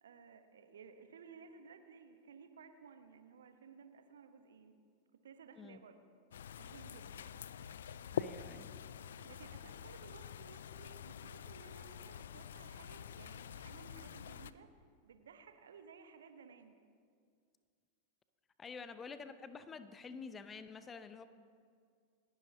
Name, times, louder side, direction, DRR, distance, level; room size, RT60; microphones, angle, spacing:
voice 1, 0.0-4.8 5.1-6.0 6.6-7.3 9.2-14.7 15.0-16.8, right 6 dB, 65° right, 8 dB, 1.0 m, -57 dB
sound 1, 6.3-14.5, left 8 dB, 65° left, 0.4 m, -46 dB
voice 2, 8.1-8.7 18.6-21.2, left 5 dB, 20° left, 11 dB, 0.7 m, -49 dB
28.5 x 11.5 x 2.8 m, 2.2 s
figure-of-eight pair, 90°, 0 cm